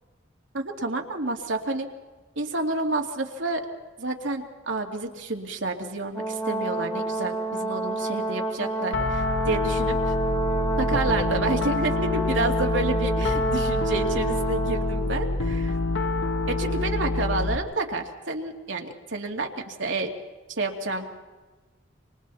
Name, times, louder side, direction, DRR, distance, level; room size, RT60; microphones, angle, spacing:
voice 1, 0.5-1.9 2.4-3.6 4.0-10.1 10.8-15.8 16.5-20.1 20.5-21.1, right 2 dB, 75° right, 2 dB, 2.5 m, -29 dB
Brass instrument, 6.1-15.1, right 2 dB, 20° left, 3.9 m, -29 dB
Piano, 8.9-17.6, left 2 dB, 80° left, 1.2 m, -26 dB
28.0 x 26.0 x 4.2 m, 1.3 s
head